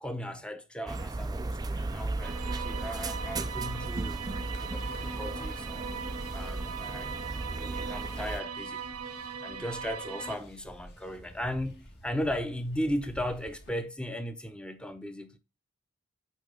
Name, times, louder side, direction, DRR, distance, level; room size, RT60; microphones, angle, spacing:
voice 1, 0.0-5.7 6.3-7.1 7.5-8.9 9.4-15.4, equal, 5° left, 0.8 m, -36 dB
sound 1, 0.9-8.4, right 2 dB, 20° right, 0.4 m, -36 dB
sound 2, 2.2-10.4, right 5 dB, 90° right, 1.1 m, -39 dB
sound 3, 4.3-13.7, equal, 50° left, 1.7 m, -53 dB
8.5 x 3.4 x 5.3 m
head